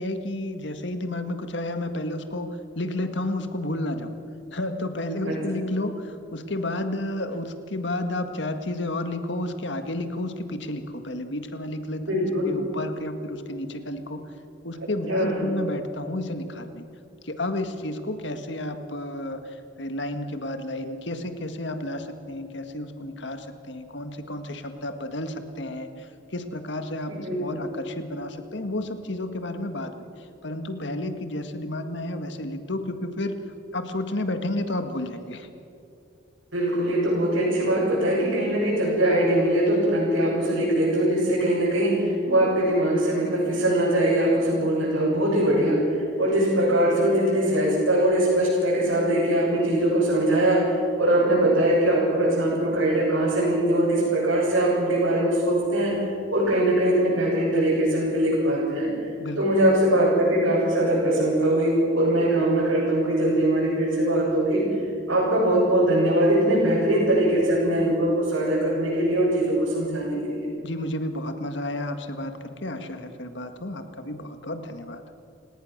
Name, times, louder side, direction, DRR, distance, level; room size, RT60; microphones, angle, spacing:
voice 1, 0.0-4.2 4.5-14.2 14.6-16.8 17.2-29.9 30.4-33.4 33.7-35.5 59.2-59.4 70.6-75.0, left 1 dB, 65° left, 7 dB, 1.8 m, -31 dB
voice 2, 12.1-12.5 15.1-15.4 27.2-27.4 36.5-55.9 56.3-58.9 59.4-64.6 65.1-70.5, right 1 dB, 85° right, -7 dB, 7.8 m, -22 dB
29.5 x 18.5 x 6.6 m, 2.6 s
head